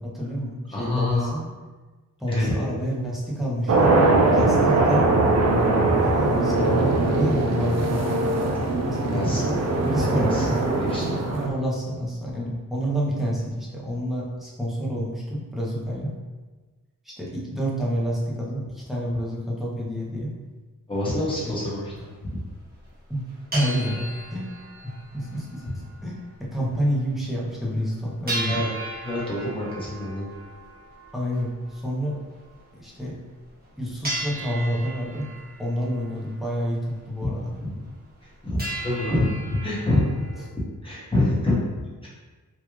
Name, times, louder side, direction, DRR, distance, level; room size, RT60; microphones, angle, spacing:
voice 1, 0.0-1.5 2.2-4.0 4.3-5.1 5.5-5.7 6.0-8.0 8.9-9.6 9.8-10.5 11.3-16.1 17.0-20.3 21.4-21.5 23.1-23.2 23.5-24.6 24.8-28.6 31.1-32.2 32.7-33.2 33.8-35.3 35.6-37.5, equal, ahead, -6 dB, 0.8 m, -28 dB
voice 2, 0.7-1.4 2.3-2.7 9.0-9.4 10.1-11.2 20.9-22.0 22.3-22.4 28.5-28.7 29.0-30.3 37.6-37.7 38.4-39.3 39.6-40.1 40.8-41.6 42.0-42.1, left 1 dB, 15° left, -7 dB, 1.1 m, -26 dB
sound 1, 3.7-11.5, right 2 dB, 50° right, 0.5 m, -21 dB
sound 2, 20.9-21.1 21.6-21.7 21.9-22.1 22.8-22.9 23.2-26.3 26.5-26.6 27.0-27.1 27.5-27.6 28.3-32.8 33.5-33.6 34.0-37.0 37.4-37.5 37.9-38.3 38.6-40.4, right 1 dB, 25° right, 1.3 m, -36 dB
3.5 x 2.4 x 3.0 m, 1.3 s
wide cardioid pair, 120°, 33 cm